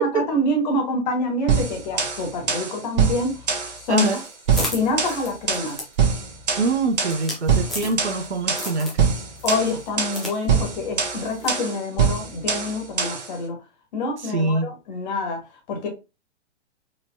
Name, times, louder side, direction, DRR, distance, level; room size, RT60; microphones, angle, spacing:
voice 1, 0.0-3.4 3.8-4.1 4.6-5.8 9.4-13.6 13.9-15.4 15.7-15.9, left 2 dB, 40° left, 1.5 m, -26 dB
sound 1, 1.5-13.3, right 6 dB, 40° right, 1.2 m, -24 dB
sound 2, 3.9-8.3 8.6-9.1 9.4-10.4 10.6-10.7 11.4-11.6, left 1 dB, ahead, 0.5 m, -34 dB
voice 2, 3.9-4.2 6.6-9.2 14.2-14.7, right 3 dB, 70° right, 0.8 m, -24 dB
4.2 x 3.2 x 2.6 m
figure-of-eight pair, 120°, 35 cm